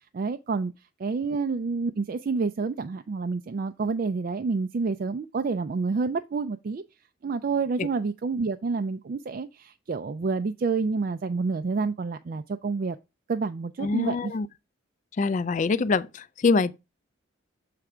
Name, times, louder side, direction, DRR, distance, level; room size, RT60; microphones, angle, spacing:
voice 1, 0.1-0.7 1.0-6.8 7.2-13.0 13.3-14.3, right 4 dB, 45° right, 0.3 m, -28 dB
voice 2, 13.8-14.5 15.2-16.7, left 4 dB, 35° left, 0.3 m, -24 dB
7.2 x 3.3 x 4.8 m
head